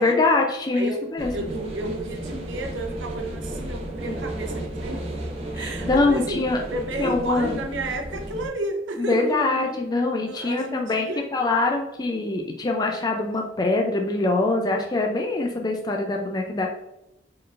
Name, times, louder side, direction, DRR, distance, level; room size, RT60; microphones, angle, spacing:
voice 1, 0.0-1.5 5.6-6.6 7.0-7.6 9.0-16.7, left 2 dB, 20° left, 2 dB, 0.4 m, -24 dB
sound 1, 1.2-8.5, right 1 dB, 35° right, 0.9 m, -33 dB
voice 2, 1.3-5.0 5.5-6.4 6.7-9.6 10.2-11.2, right 1 dB, 80° right, 3 dB, 0.8 m, -32 dB
4.3 x 3.8 x 2.5 m, 0.88 s
head